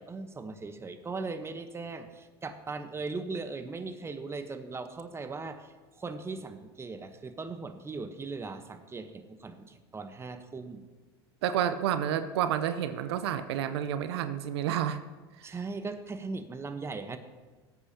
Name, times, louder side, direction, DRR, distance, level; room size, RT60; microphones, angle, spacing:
voice 1, 0.0-10.8 15.4-17.2, right 3 dB, 20° right, 9 dB, 0.9 m, -39 dB
voice 2, 11.4-15.0 15.4-15.5, right 9 dB, 75° right, 11 dB, 0.6 m, -30 dB
18.0 x 8.2 x 2.8 m, 1.3 s
hypercardioid pair, 85°, 14 cm